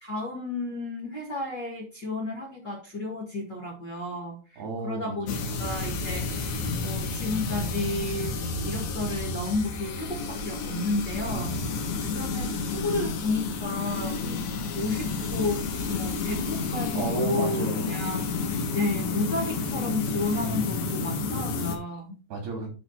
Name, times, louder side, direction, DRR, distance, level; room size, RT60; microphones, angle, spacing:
voice 1, 0.0-8.4 8.6-11.6 12.0-22.2, left 2 dB, 35° left, -3 dB, 2.1 m, -32 dB
voice 2, 4.6-5.7 11.2-12.2 16.9-18.1 22.3-22.7, right 3 dB, 75° right, 0 dB, 5.2 m, -34 dB
sound 1, 5.3-21.8, left 4 dB, 60° left, 2.1 m, -30 dB
10.5 x 4.1 x 4.3 m, 0.34 s
omnidirectional pair, 4.5 m